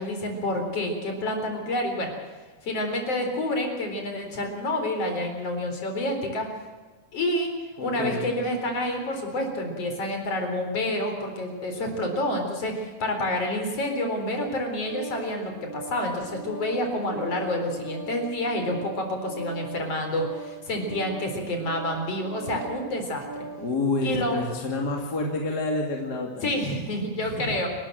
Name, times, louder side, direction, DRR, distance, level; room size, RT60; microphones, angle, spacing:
voice 1, 0.0-2.1 2.6-6.5 7.1-7.5 7.8-23.3 24.0-24.4 26.4-27.7, left 1 dB, 50° left, 4 dB, 5.0 m, -28 dB
voice 2, 7.8-8.3 23.6-26.3 27.2-27.5, left 2 dB, 35° left, 1 dB, 2.9 m, -28 dB
Organ, 14.7-23.7, right 3 dB, 25° right, 0.4 m, -40 dB
29.0 x 13.0 x 7.7 m, 1.4 s
omnidirectional pair, 3.4 m